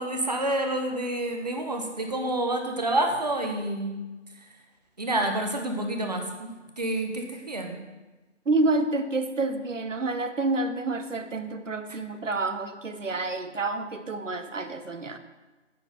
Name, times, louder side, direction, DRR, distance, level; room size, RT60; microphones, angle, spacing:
voice 1, 0.0-4.0 5.0-7.8, right 1 dB, 35° right, 3 dB, 0.9 m, -28 dB
voice 2, 8.5-15.2, right 2 dB, 85° right, 10 dB, 0.9 m, -28 dB
9.8 x 3.9 x 6.8 m, 1.2 s
figure-of-eight pair, 160°, 37 cm